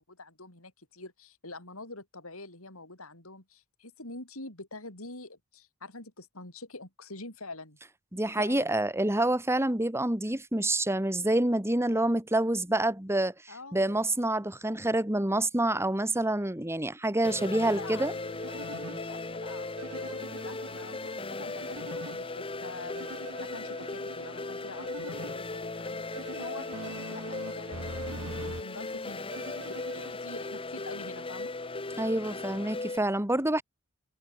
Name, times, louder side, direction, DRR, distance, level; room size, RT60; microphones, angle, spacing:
voice 1, 0.0-7.8 8.3-8.7 13.5-14.0 17.4-29.3 29.7-31.5, left 2 dB, 75° left, 7.7 m, -45 dB
voice 2, 8.1-13.3 13.7-18.1 32.0-33.6, right 1 dB, 10° right, 2.0 m, -27 dB
sound 1, 17.2-33.0, left 3 dB, 25° left, 1.2 m, -37 dB
sound 2, 18.0-19.0 19.8-22.2 22.9-25.3 26.1-28.6 29.3-30.1, right 2 dB, 90° right, 5.2 m, -43 dB
head